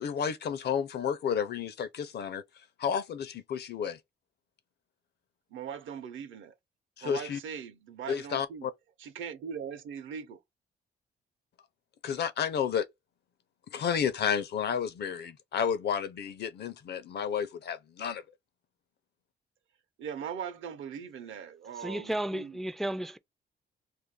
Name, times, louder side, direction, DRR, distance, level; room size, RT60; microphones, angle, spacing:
voice 1, 0.0-2.4 2.8-4.0 7.0-7.4 8.1-8.7 12.0-12.9 13.7-18.2, left 7 dB, 55° left, 0.6 m, -31 dB
voice 2, 5.5-6.5 7.0-8.7 9.0-10.4 20.0-22.6, right 7 dB, 75° right, 0.7 m, -40 dB
voice 3, 21.8-23.2, right 1 dB, ahead, 0.3 m, -33 dB
2.6 x 2.4 x 3.6 m
cardioid pair, 90°, 20 cm